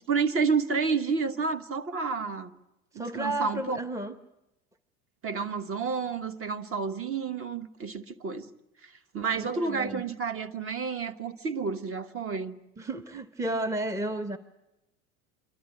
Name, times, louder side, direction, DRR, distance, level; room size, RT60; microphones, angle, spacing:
voice 1, 0.1-2.5 2.9-3.8 5.2-8.5 8.8-12.6, right 5 dB, 30° right, 1.3 m, -30 dB
voice 2, 2.9-4.1 9.4-10.0 12.8-14.4, right 1 dB, 5° right, 0.9 m, -32 dB
27.0 x 12.5 x 9.9 m
hypercardioid pair, 85°, 44 cm